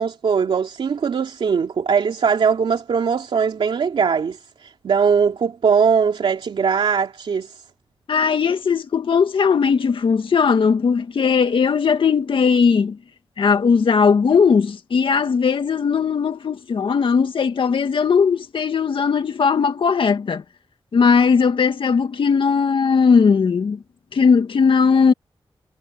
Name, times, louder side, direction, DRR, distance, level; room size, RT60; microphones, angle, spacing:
voice 1, 0.0-7.5, right 6 dB, 75° right, 2.6 m, -20 dB
voice 2, 8.1-13.0 13.4-20.4 20.9-23.8 24.1-25.1, left 5 dB, 70° left, 1.9 m, -18 dB
wide cardioid pair, 100°, 9 cm